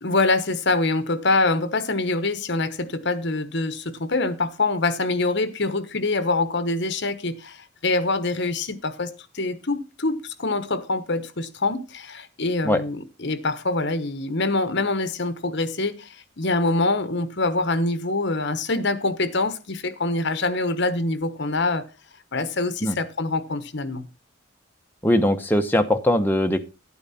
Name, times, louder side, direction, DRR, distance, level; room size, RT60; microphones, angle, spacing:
voice 1, 0.0-21.8 22.3-24.1, left 2 dB, 55° left, 1.1 m, -25 dB
voice 2, 25.0-26.6, left 1 dB, 10° left, 0.9 m, -20 dB
11.0 x 8.8 x 4.2 m
head